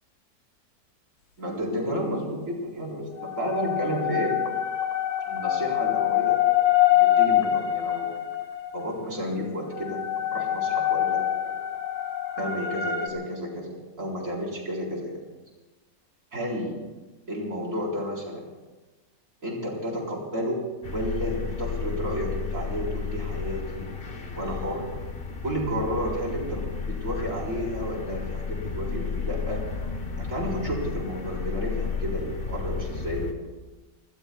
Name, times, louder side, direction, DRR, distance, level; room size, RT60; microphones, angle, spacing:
voice 1, 1.4-4.4 5.3-6.4 6.9-8.1 8.7-11.2 12.4-15.2 16.3-16.8 17.3-18.4 19.4-24.9 25.4-29.6 30.2-33.3, equal, 45° right, -2 dB, 4.5 m, -31 dB
sound 1, 3.2-8.9 9.8-13.1, left 12 dB, 80° left, 1.7 m, -25 dB
sound 2, 20.8-33.3, left 5 dB, 35° left, 1.1 m, -33 dB
30.0 x 20.0 x 2.3 m, 1.2 s
omnidirectional pair, 1.9 m